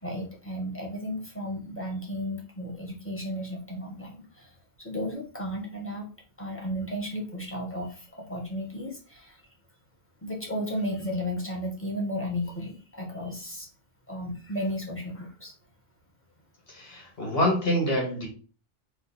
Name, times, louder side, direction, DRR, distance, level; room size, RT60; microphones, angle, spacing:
voice 1, 0.0-4.5 4.8-6.1 6.4-9.5 10.2-13.7 14.1-15.5, equal, 15° left, -1 dB, 1.2 m, -34 dB
voice 2, 16.7-18.3, left 1 dB, 70° left, 0 dB, 1.9 m, -26 dB
3.9 x 2.7 x 4.0 m, 0.37 s
omnidirectional pair, 1.0 m